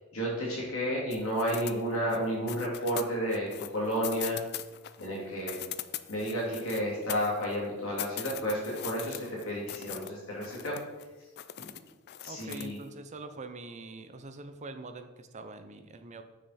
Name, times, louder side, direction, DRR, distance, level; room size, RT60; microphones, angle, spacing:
voice 1, 0.1-4.4 5.0-5.6 6.1-9.2 9.4-10.7 12.2-12.8, equal, 75° left, -5 dB, 2.7 m, -31 dB
sound 1, 1.1-2.2 2.5-5.1 5.4-7.6 8.0-10.1 10.4-11.0 11.4-12.8, left 13 dB, 50° left, 0.3 m, -40 dB
voice 2, 12.3-16.2, right 3 dB, 35° right, 9 dB, 0.5 m, -44 dB
6.8 x 6.3 x 4.2 m, 1.2 s
head